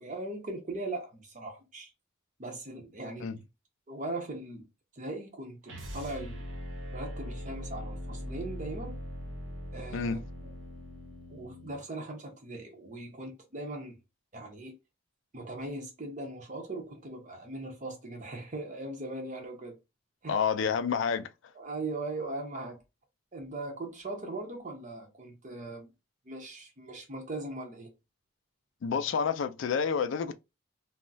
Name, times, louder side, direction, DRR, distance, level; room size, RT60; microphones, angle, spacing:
voice 1, 0.0-1.9 2.4-3.3 3.9-4.7 4.9-6.4 6.9-9.0 9.7-10.2 11.3-14.0 14.3-14.7 15.3-19.8 20.2-20.4 21.6-22.8 23.3-25.9 26.3-27.9, right 2 dB, 35° right, 0.6 m, -39 dB
sound 1, 5.6-11.8, equal, 70° right, 0.8 m, -41 dB
voice 2, 20.3-21.3 28.8-30.3, left 6 dB, 65° left, 0.3 m, -29 dB
2.3 x 2.0 x 3.8 m
head